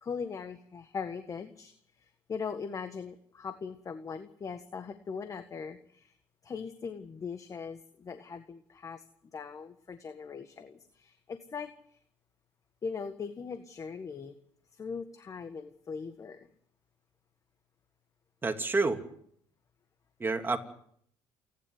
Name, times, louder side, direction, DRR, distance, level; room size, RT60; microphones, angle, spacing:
voice 1, 0.0-6.1 6.4-9.0 9.3-11.7 12.8-14.3 14.7-16.5, left 5 dB, 35° left, 9 dB, 1.6 m, -40 dB
voice 2, 18.4-19.0 20.2-20.6, right 3 dB, 25° right, 5 dB, 2.9 m, -28 dB
28.0 x 11.0 x 9.6 m, 0.65 s
cardioid pair, 100°, 9 cm